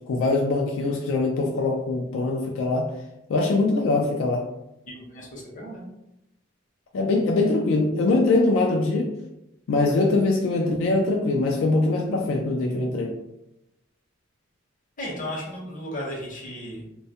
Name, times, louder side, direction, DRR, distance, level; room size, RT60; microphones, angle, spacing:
voice 1, 0.1-2.9 3.3-4.5 6.9-9.1 9.7-13.1, left 2 dB, 75° left, 0 dB, 0.3 m, -22 dB
voice 2, 4.9-5.8 15.0-16.9, left 1 dB, 40° left, -3 dB, 0.7 m, -35 dB
2.2 x 2.0 x 2.7 m, 0.87 s
head